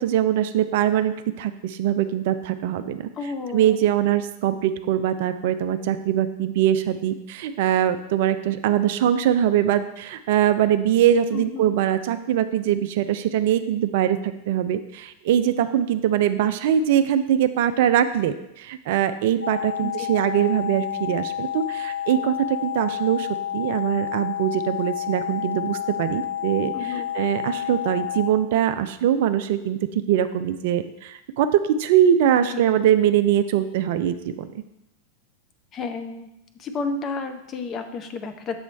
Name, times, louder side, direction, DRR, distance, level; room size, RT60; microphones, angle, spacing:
voice 1, 0.0-3.1 3.5-23.3 23.5-34.5, right 10 dB, 50° right, 10 dB, 0.3 m, -22 dB
voice 2, 3.2-3.8 11.3-11.8 19.8-20.1 26.7-27.1 32.5-32.6 35.7-36.3 36.5-38.6, left 4 dB, 30° left, 6 dB, 0.6 m, -31 dB
sound 1, 19.4-28.3, left 10 dB, 90° left, 0.3 m, -30 dB
6.9 x 3.0 x 5.1 m, 0.87 s
figure-of-eight pair, 90°, 0 cm